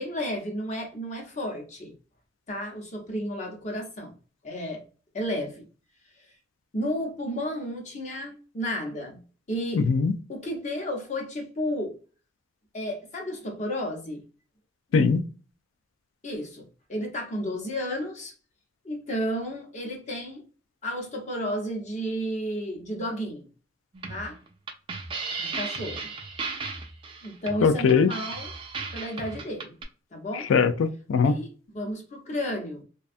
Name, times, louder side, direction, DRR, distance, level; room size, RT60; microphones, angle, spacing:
voice 1, 0.0-1.9 2.5-4.2 4.4-4.8 5.1-5.6 6.7-9.2 9.5-9.9 10.3-12.0 12.7-14.2 16.2-18.3 18.8-20.4 20.8-23.5 24.1-24.4 25.4-26.1 27.2-28.5 28.9-29.7 30.1-30.5 31.2-32.8, equal, 35° left, 0.7 m, -32 dB
voice 2, 9.7-10.2 14.9-15.2 27.6-28.1 30.5-31.3, left 5 dB, 80° left, 0.3 m, -21 dB
sound 1, 23.9-29.8, right 4 dB, 25° right, 0.3 m, -35 dB
2.5 x 2.2 x 2.4 m
head